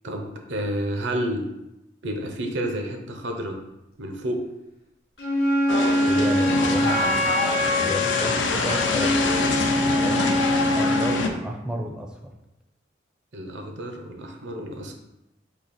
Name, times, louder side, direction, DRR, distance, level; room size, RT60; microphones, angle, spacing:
voice 1, 0.0-1.5 2.0-3.6 4.0-4.4 13.3-14.9, right 1 dB, 75° right, 3 dB, 0.7 m, -30 dB
Wind instrument woodwind instrument, 5.2-11.2, left 1 dB, 55° left, 0.9 m, -23 dB
sound 1, 5.7-11.3, left 3 dB, 75° left, 0.5 m, -25 dB
voice 2, 6.1-7.4 7.6-12.3, equal, 5° right, 1 dB, 0.5 m, -33 dB
4.2 x 2.8 x 4.1 m, 0.91 s
head